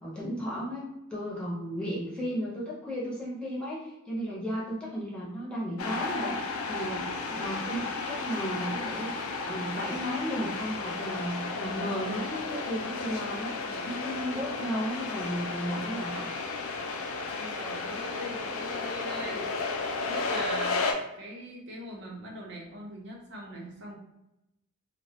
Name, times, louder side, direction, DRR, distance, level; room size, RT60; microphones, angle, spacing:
voice 1, 0.0-6.4 6.7-13.6 13.8-16.3, equal, 5° left, -7 dB, 0.6 m, -34 dB
sound 1, 5.8-20.9, left 3 dB, 80° left, 0.4 m, -33 dB
voice 2, 17.4-19.5 20.1-24.0, right 1 dB, 55° right, -2 dB, 0.6 m, -42 dB
2.2 x 2.0 x 2.8 m, 0.88 s
head